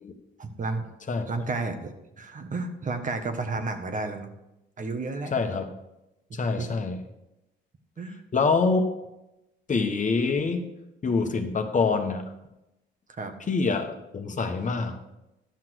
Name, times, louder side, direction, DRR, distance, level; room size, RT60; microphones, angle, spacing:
voice 1, 0.4-0.9 1.3-4.3 4.8-5.3 6.6-6.7 8.0-8.2 13.2-13.3, right 3 dB, 40° right, 6 dB, 1.4 m, -32 dB
voice 2, 5.3-5.7 6.3-7.0 8.3-8.9 9.7-10.6 11.0-12.3 13.5-15.0, left 4 dB, 40° left, 5 dB, 1.4 m, -25 dB
11.5 x 5.9 x 6.3 m, 0.90 s
cardioid pair, 90°, 20 cm